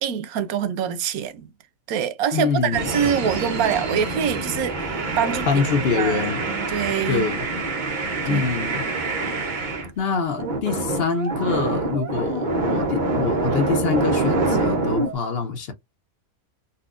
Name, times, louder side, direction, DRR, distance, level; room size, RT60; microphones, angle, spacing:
voice 1, 0.0-1.5 1.9-5.6 5.9-7.2 8.2-8.4, right 8 dB, 90° right, 1.1 m, -25 dB
voice 2, 2.3-2.9 5.5-6.4 7.1-7.5 8.2-8.8 10.0-15.7, left 5 dB, 55° left, 0.7 m, -25 dB
sound 1, 2.7-9.9 10.3-15.1, right 2 dB, 45° right, 0.7 m, -26 dB
4.1 x 2.2 x 2.4 m
omnidirectional pair, 1.5 m